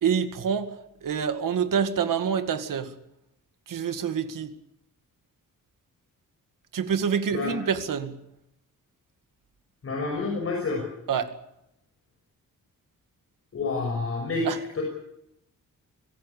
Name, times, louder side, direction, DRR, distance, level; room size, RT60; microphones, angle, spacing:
voice 1, 0.0-2.9 3.7-4.5 6.7-8.1 11.1-11.3 14.4-14.6, right 7 dB, 75° right, 9 dB, 2.1 m, -27 dB
voice 2, 9.8-10.8 13.5-14.5 14.7-14.8, left 3 dB, 45° left, 0 dB, 6.2 m, -28 dB
24.5 x 16.5 x 8.4 m, 0.82 s
wide cardioid pair, 160°, 33 cm